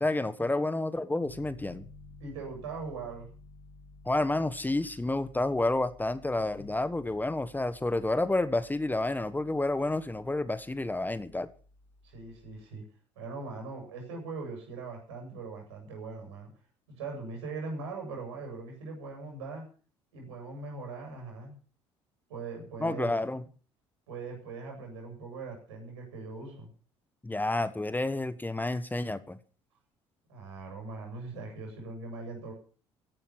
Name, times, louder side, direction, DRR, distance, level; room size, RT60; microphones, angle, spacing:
voice 1, 0.0-1.9 4.0-11.5 22.8-23.4 27.2-29.4, left 2 dB, 10° left, 1.3 m, -30 dB
Piano, 1.2-12.5, left 3 dB, 90° left, 7.0 m, -54 dB
voice 2, 2.2-3.3 6.6-6.7 12.0-12.8 13.1-16.5 17.0-19.6 20.1-21.6 22.3-23.1 24.1-26.7 30.3-32.5, right 3 dB, 75° right, 7.7 m, -40 dB
16.0 x 11.5 x 5.8 m
figure-of-eight pair, 50°, 15 cm